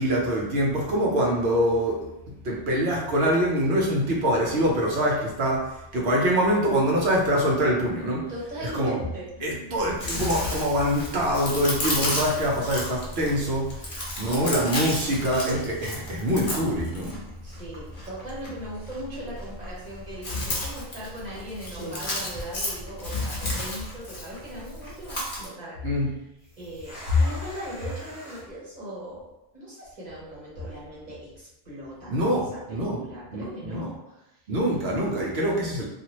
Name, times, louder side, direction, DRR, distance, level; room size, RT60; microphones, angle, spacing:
voice 1, 0.0-2.1 2.4-8.3 8.6-9.0 9.4-17.2 25.8-26.1 32.1-33.0 33.3-33.9 34.5-35.8, equal, 65° right, -3 dB, 1.0 m, -24 dB
voice 2, 8.3-9.7 17.4-25.9 26.6-29.3 29.5-34.4 34.7-34.8, equal, 40° right, -7 dB, 1.2 m, -39 dB
Chewing mastication, 9.8-25.5, left 1 dB, 55° left, 1.0 m, -33 dB
sound 1, 21.7-23.3 23.6-23.7 24.3-24.7 26.4-28.4, equal, 5° right, 1.0 m, -42 dB
2.8 x 2.5 x 2.9 m, 0.91 s
omnidirectional pair, 1.1 m